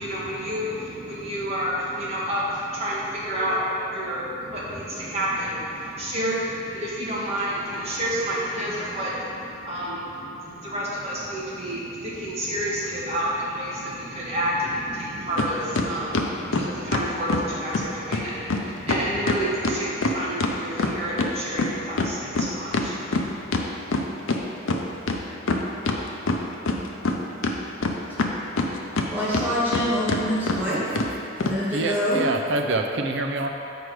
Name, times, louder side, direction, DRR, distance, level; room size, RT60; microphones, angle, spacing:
voice 1, 0.0-23.5, equal, 35° right, -7 dB, 1.6 m, -29 dB
sound 1, 15.4-15.5 15.8-17.5 17.7-17.8 18.1-18.2 18.5-18.6 18.9-21.3 21.6-24.4 24.7-24.8 25.1-26.0 26.3-27.2 27.4-29.1 29.3-29.8 30.1-30.2 30.5-30.6 31.0-31.1 31.4-31.6, left 3 dB, 90° left, 0.6 m, -24 dB
voice 2, 29.1-30.8 31.4-32.2, equal, 10° right, -11 dB, 1.7 m, -25 dB
voice 3, 31.7-33.5, right 2 dB, 65° right, 4 dB, 0.6 m, -26 dB
7.8 x 4.9 x 4.8 m, 2.9 s
head